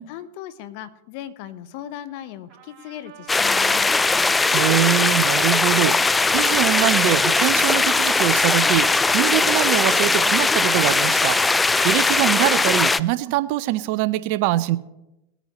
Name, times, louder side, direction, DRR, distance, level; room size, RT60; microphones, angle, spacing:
voice 1, 0.1-4.4, left 11 dB, 55° left, 13 dB, 0.9 m, -38 dB
Trumpet, 2.5-10.0, right 9 dB, 40° right, 2.7 m, -47 dB
sound 1, 3.3-13.0, left 3 dB, 10° left, 0.4 m, -19 dB
voice 2, 4.5-14.8, right 15 dB, 55° right, 14 dB, 0.6 m, -23 dB
19.5 x 9.1 x 3.1 m, 0.92 s
hypercardioid pair, 100°, 0 cm